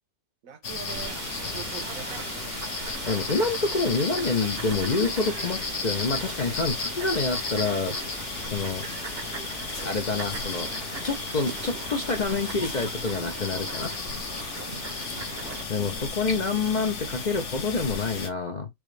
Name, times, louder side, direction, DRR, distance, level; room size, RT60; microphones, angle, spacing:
voice 1, 0.4-2.4 15.7-16.9, right 9 dB, 75° right, 1.3 m, -44 dB
sound 1, 0.6-18.3, left 4 dB, 60° left, 1.2 m, -34 dB
Fowl, 0.9-15.6, right 6 dB, 50° right, 0.9 m, -39 dB
voice 2, 3.1-8.0 8.4-8.9 9.8-10.7 11.0-13.9 15.7-18.7, left 4 dB, 45° left, 0.7 m, -27 dB
4.7 x 2.6 x 3.1 m
omnidirectional pair, 1.4 m